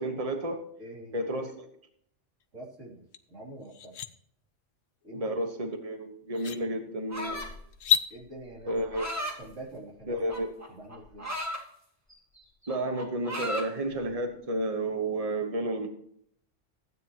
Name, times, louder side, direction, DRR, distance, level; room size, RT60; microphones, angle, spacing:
voice 1, 0.0-0.6 1.1-1.7 5.1-7.4 8.7-9.1 10.1-10.5 12.7-15.9, right 1 dB, 30° right, 5 dB, 1.4 m, -31 dB
voice 2, 0.8-1.2 2.5-3.9 5.0-5.3 8.1-8.7 9.4-10.2 10.7-11.3, right 1 dB, 90° right, -3 dB, 3.6 m, -45 dB
sound 1, 3.1-3.2 3.6-4.1 5.7-5.8 6.3-6.6 7.7-8.1, left 9 dB, 65° left, 1.0 m, -27 dB
sound 2, 7.1-7.6 8.7-9.4 10.3-11.6 12.1-12.4 12.6-13.7, equal, 15° right, 2.0 m, -35 dB
15.5 x 9.4 x 3.0 m, 0.66 s
omnidirectional pair, 1.2 m